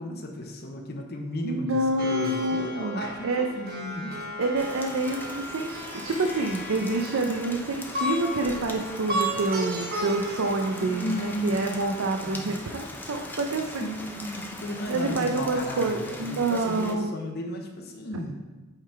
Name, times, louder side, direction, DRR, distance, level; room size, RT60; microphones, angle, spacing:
voice 1, 0.0-4.3 10.8-11.8 12.2-12.5 13.8-18.3, left 1 dB, 50° left, 2 dB, 0.8 m, -35 dB
voice 2, 1.4-3.5 4.4-14.0 14.9-17.1, right 2 dB, 75° right, 3 dB, 0.5 m, -27 dB
Plucked string instrument, 2.0-12.3, equal, 50° right, 1.2 m, -35 dB
Rain, 4.6-16.9, left 1 dB, 10° left, 0.6 m, -40 dB
7.8 x 3.8 x 4.4 m, 1.2 s
head